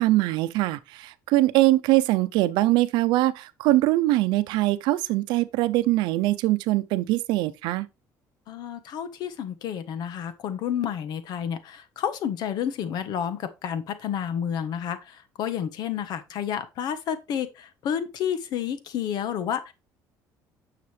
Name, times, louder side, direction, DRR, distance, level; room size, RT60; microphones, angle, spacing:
voice 1, 0.0-7.9, right 17 dB, 85° right, 0.7 m, -22 dB
voice 2, 8.5-19.7, left 9 dB, 65° left, 1.3 m, -30 dB
9.5 x 6.7 x 3.4 m
cardioid pair, 125°, 8 cm